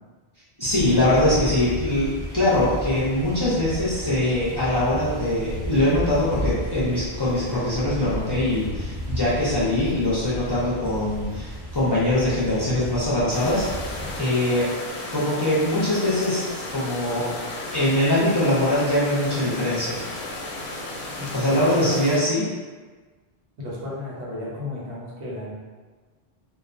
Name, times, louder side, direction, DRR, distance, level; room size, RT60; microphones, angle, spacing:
voice 1, 0.6-14.7 15.1-16.4 16.7-17.3 17.7-20.0 21.3-22.5, left 1 dB, 30° left, -11 dB, 0.5 m, -22 dB
sound 1, 0.7-14.2, equal, 35° right, 0.7 m, -33 dB
sound 2, 13.3-22.2, left 2 dB, 90° left, 0.9 m, -34 dB
voice 2, 21.1-21.9 23.6-25.5, left 1 dB, 85° right, -6 dB, 1.1 m, -34 dB
2.3 x 2.1 x 2.5 m, 1.4 s
omnidirectional pair, 1.1 m